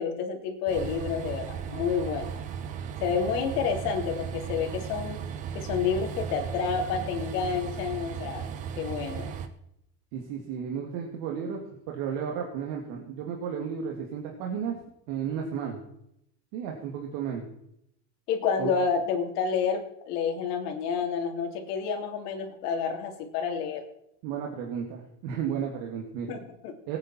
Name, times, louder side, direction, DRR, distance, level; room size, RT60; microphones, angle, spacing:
voice 1, 0.0-2.4 3.0-5.2 5.5-8.5 8.8-9.3 18.3-23.8 26.3-26.7, left 6 dB, 65° left, 3 dB, 3.3 m, -29 dB
Train, 0.7-9.5, right 7 dB, 15° right, 0.4 m, -36 dB
voice 2, 10.1-11.6 11.9-14.8 15.1-15.8 16.5-17.5 18.6-18.7 24.2-26.4 26.9-27.0, right 7 dB, 50° right, 0 dB, 2.4 m, -33 dB
21.0 x 9.6 x 4.5 m, 0.77 s
supercardioid pair, 170°, 50 cm